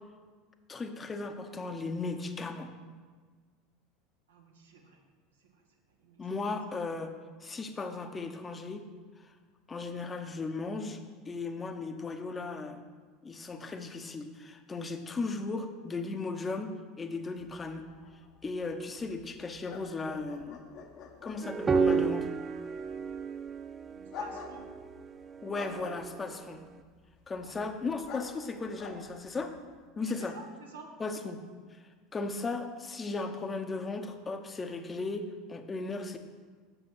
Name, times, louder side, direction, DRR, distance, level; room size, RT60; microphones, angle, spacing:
voice 1, 0.7-2.7 6.2-7.1 7.4-8.8 9.2-9.3 9.7-11.0 11.3-12.8 13.2-17.9 18.4-20.6 21.2-22.3 25.4-26.6 27.3-29.6 30.0-30.4 31.0-31.4 31.7-31.8 32.1-36.2, left 3 dB, 25° left, 7 dB, 1.0 m, -36 dB
voice 2, 4.3-5.0 5.4-5.6 6.0-6.2 13.6-13.7 23.9-24.7 27.4-27.5 29.9-30.9, right 4 dB, 80° right, 1 dB, 1.4 m, -51 dB
sound 1, 17.4-29.9, left 5 dB, 50° left, 1.1 m, -49 dB
sound 2, 21.4-26.4, right 5 dB, 25° right, 0.4 m, -31 dB
7.9 x 7.1 x 6.0 m, 1.5 s
figure-of-eight pair, 75°, 0 cm